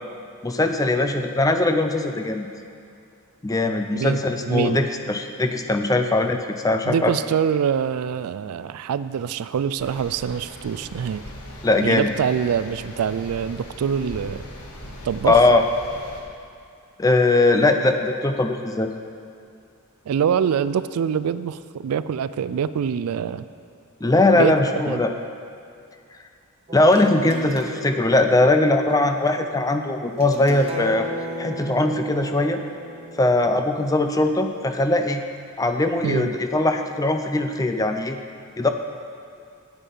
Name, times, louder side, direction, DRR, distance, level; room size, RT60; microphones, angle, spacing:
voice 1, 0.4-2.5 3.4-7.1 11.6-12.1 15.3-15.6 17.0-18.9 24.0-25.1 26.7-31.1 31.4-32.6 33.2-35.2 35.6-38.2 38.6-38.7, left 2 dB, 15° left, 6 dB, 0.5 m, -20 dB
voice 2, 3.9-4.8 6.8-11.2 11.8-14.4 15.0-15.4 20.1-23.5 24.3-24.5 24.9-25.0 36.0-36.3, right 7 dB, 80° right, 14 dB, 0.3 m, -25 dB
sound 1, 9.8-16.2, left 1 dB, 90° left, 1.4 m, -40 dB
sound 2, 26.7-34.4, equal, 25° right, 0.8 m, -37 dB
9.1 x 8.3 x 5.5 m, 2.4 s
head